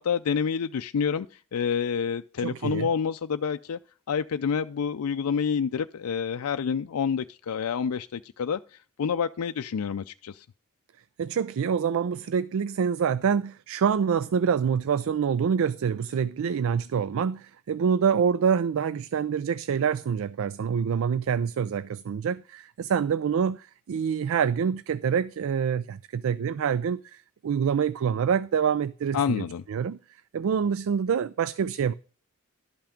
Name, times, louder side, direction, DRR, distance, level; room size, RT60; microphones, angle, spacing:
voice 1, 0.0-3.8 4.1-10.5 29.1-29.6, left 6 dB, 85° left, 0.4 m, -28 dB
voice 2, 2.4-2.9 11.2-30.0 30.3-31.9, right 7 dB, 65° right, 0.4 m, -26 dB
12.0 x 5.8 x 5.0 m
head